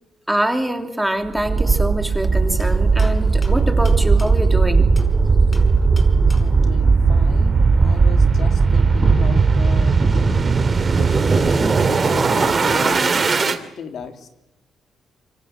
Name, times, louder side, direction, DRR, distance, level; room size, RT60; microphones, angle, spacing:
voice 1, 0.3-4.9, right 1 dB, 5° right, 6 dB, 3.1 m, -24 dB
sound 1, 1.4-13.6, right 4 dB, 35° right, 2.8 m, -17 dB
sound 2, 2.6-5.2 5.5-6.7 8.6-8.7 9.0-10.6, left 2 dB, 30° left, 5.1 m, -36 dB
voice 2, 6.4-10.0 11.0-14.3, left 6 dB, 65° left, 6 dB, 3.5 m, -35 dB
26.5 x 25.0 x 7.6 m, 0.86 s
cardioid pair, 90°, 0 cm